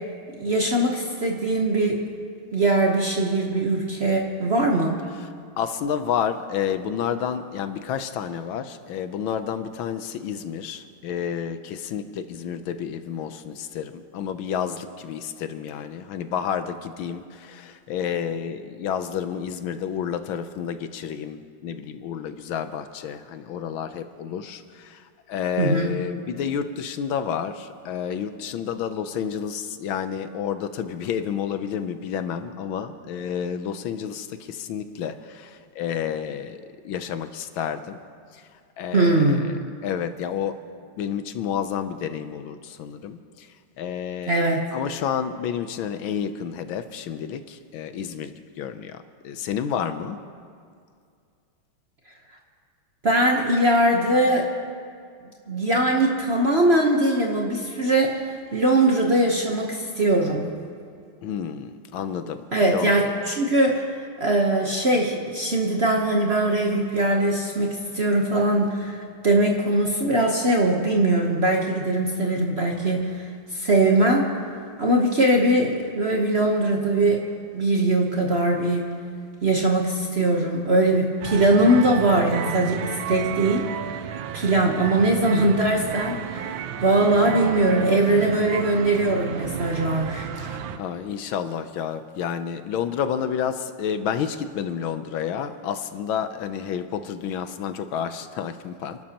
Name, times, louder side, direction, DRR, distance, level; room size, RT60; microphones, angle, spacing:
voice 1, 0.4-2.0 2.5-5.0 25.6-25.9 38.9-39.5 44.3-44.7 53.0-54.5 55.5-58.2 58.5-60.5 62.5-63.8 64.2-73.2 73.5-74.3 74.8-77.2 77.5-78.9 79.4-83.7 84.3-90.3, right 1 dB, 40° right, 0 dB, 1.0 m, -21 dB
voice 2, 5.6-38.0 38.3-38.4 38.8-39.2 39.8-40.6 41.0-43.5 43.8-44.4 44.7-48.3 48.6-50.2 61.2-63.1 90.4-99.0, left 8 dB, 75° left, 10 dB, 1.5 m, -30 dB
sound 1, 81.2-90.8, right 9 dB, 75° right, 1.4 m, -33 dB
29.5 x 12.5 x 2.9 m, 2.3 s
omnidirectional pair, 2.3 m